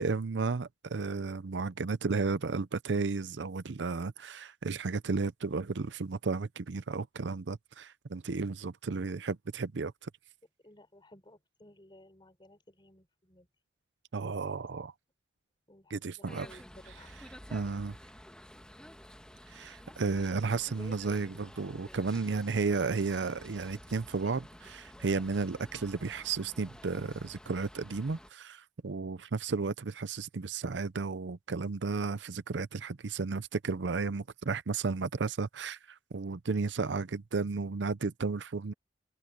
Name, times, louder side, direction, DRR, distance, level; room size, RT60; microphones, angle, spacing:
voice 1, 0.0-10.1 14.1-14.9 15.9-16.5 17.5-17.9 19.5-38.7, right 4 dB, 80° right, 0.6 m, -33 dB
voice 2, 10.6-13.5 15.7-17.2 20.8-21.3 32.1-32.2, left 1 dB, 25° left, 5.3 m, -55 dB
sound 1, 16.2-28.3, equal, 5° left, 1.4 m, -51 dB
open air
head